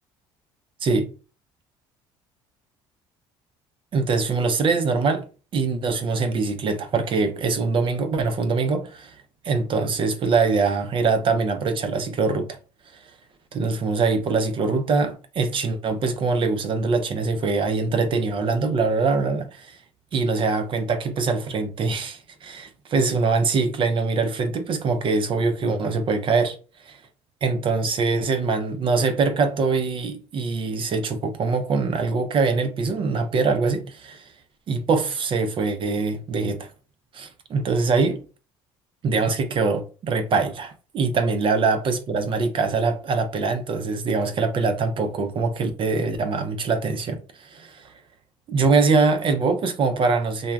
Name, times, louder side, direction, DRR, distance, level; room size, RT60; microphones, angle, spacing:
voice 1, 3.9-5.2 5.5-9.1 9.4-12.6 13.5-19.8 20.1-26.6 26.8-27.0 27.4-34.3 34.7-36.7 37.1-38.2 39.0-47.9 48.5-50.5, right 4 dB, 45° right, 0.5 m, -23 dB
2.2 x 2.1 x 3.3 m
supercardioid pair, 80°, 12 cm